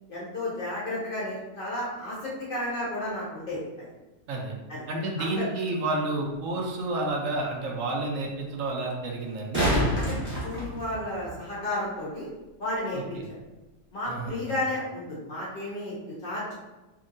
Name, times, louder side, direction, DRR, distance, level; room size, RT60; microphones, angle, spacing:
voice 1, 0.1-3.9 4.7-4.8 5.2-5.5 9.9-10.2 10.4-12.3 12.6-13.4 13.9-16.5, left 1 dB, 50° left, -6 dB, 0.8 m, -32 dB
voice 2, 4.9-9.7 12.9-13.2 14.1-14.5, right 2 dB, 75° right, 0 dB, 1.0 m, -30 dB
sound 1, 6.3-6.4 9.2-11.3 14.2-14.3, equal, 10° right, 0.8 m, -27 dB
2.8 x 2.7 x 2.5 m, 1.1 s
omnidirectional pair, 1.4 m